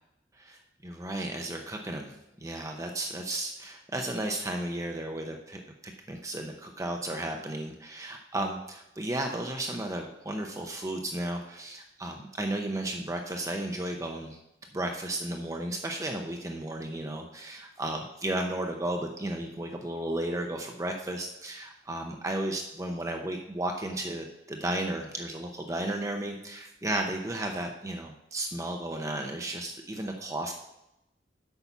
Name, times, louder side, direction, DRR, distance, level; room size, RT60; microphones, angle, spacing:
voice 1, 0.4-5.6 6.1-14.4 14.7-30.5, right 1 dB, 20° right, 3 dB, 0.7 m, -34 dB
8.1 x 5.8 x 7.1 m, 0.86 s
head